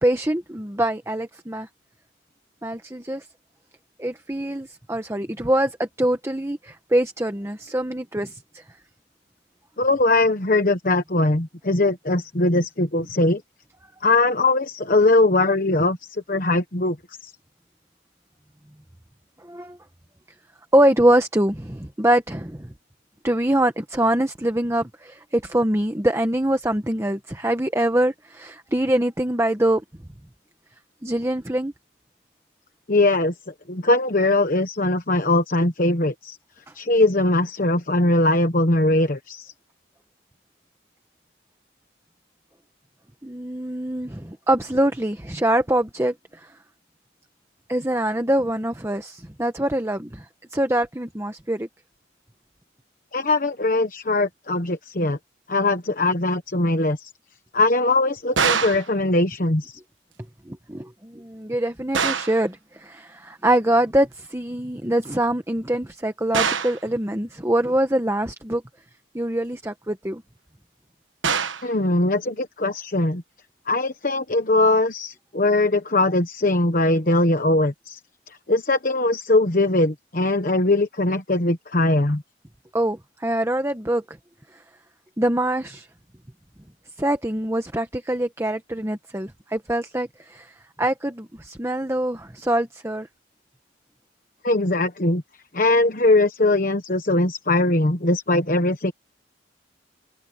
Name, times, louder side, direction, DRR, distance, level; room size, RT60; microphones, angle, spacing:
voice 1, 0.0-1.7 2.6-3.3 4.0-8.6 19.4-19.8 20.7-22.7 23.2-29.8 31.0-31.7 43.2-46.5 47.7-50.3 50.5-51.7 60.5-68.6 69.1-70.2 82.7-84.0 85.2-85.9 87.0-93.1, right 1 dB, 15° right, 1.1 m, -24 dB
voice 2, 9.8-13.4 14.0-16.0 16.3-17.0 17.2-17.3 32.9-33.3 33.7-36.4 36.7-39.5 53.1-55.2 55.5-57.1 57.5-59.8 71.6-73.2 73.7-78.0 78.5-82.2 94.4-95.2 95.5-98.9, left 2 dB, 45° left, 1.2 m, -21 dB
sound 1, 58.4-58.9 61.9-62.4 66.3-66.8 71.2-71.7, right 6 dB, 90° right, 1.3 m, -23 dB
head